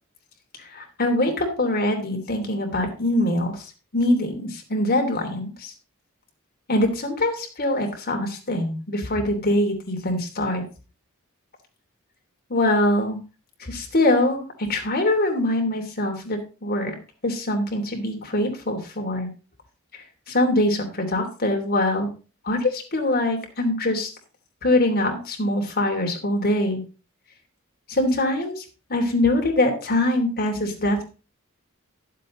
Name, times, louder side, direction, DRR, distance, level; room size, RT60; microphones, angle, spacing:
voice 1, 0.7-3.7 3.9-5.7 6.7-10.6 12.5-13.2 13.6-14.4 14.7-16.9 17.2-19.3 20.3-22.1 22.4-24.1 24.6-26.8 27.9-28.6 28.9-31.0, left 1 dB, 45° left, 2 dB, 3.0 m, -23 dB
11.5 x 7.6 x 3.8 m, 0.33 s
head